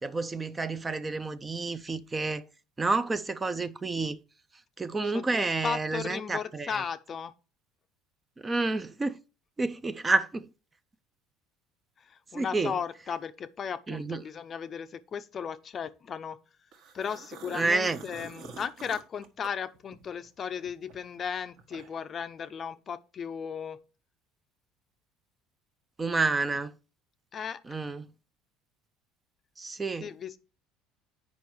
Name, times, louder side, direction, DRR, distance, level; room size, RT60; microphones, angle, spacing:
voice 1, 0.0-2.5 2.8-4.2 4.8-6.8 8.4-9.2 9.6-10.5 12.3-12.7 13.9-14.2 17.5-18.0 26.0-26.7 27.7-28.1 29.6-30.1, right 3 dB, 15° right, 0.4 m, -29 dB
voice 2, 5.1-7.3 12.0-16.4 16.9-23.8 27.3-27.6 30.0-30.4, left 7 dB, 35° left, 0.5 m, -36 dB
sound 1, 16.7-20.3 20.6-22.1, right 5 dB, 55° right, 1.3 m, -47 dB
8.5 x 5.2 x 4.6 m
cardioid pair, 140°, 0 cm